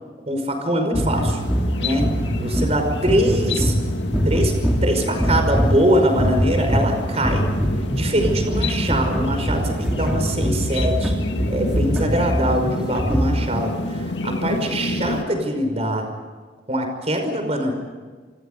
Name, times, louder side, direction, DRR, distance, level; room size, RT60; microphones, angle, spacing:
voice 1, 0.3-1.4 1.8-2.0 2.4-3.7 4.2-4.6 4.8-7.5 7.9-11.1 11.5-16.1 16.7-17.7, right 1 dB, 35° right, 5 dB, 5.4 m, -23 dB
sound 1, 0.9-13.6, equal, 5° right, 2.9 m, -23 dB
sound 2, 1.1-15.2, left 2 dB, 85° left, 2.0 m, -30 dB
28.5 x 24.5 x 5.4 m, 1.5 s
head